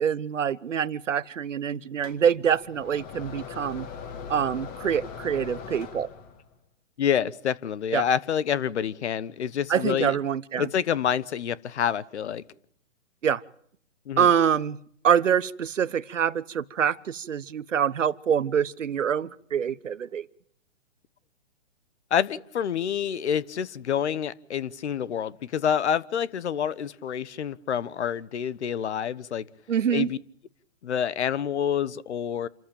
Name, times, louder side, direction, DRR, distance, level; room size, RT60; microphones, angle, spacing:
voice 1, 0.0-3.9 4.3-6.1 7.9-8.1 9.7-10.7 13.2-13.4 14.2-14.8 15.0-20.3 29.7-30.1, right 8 dB, 80° right, 1.1 m, -25 dB
sound 1, 2.0-6.5, left 6 dB, 25° left, 2.5 m, -40 dB
voice 2, 7.0-10.2 10.6-12.4 14.1-14.3 22.1-29.5 29.9-30.2 30.8-32.5, left 8 dB, 65° left, 1.3 m, -27 dB
28.0 x 14.0 x 8.9 m
hypercardioid pair, 145°, 37 cm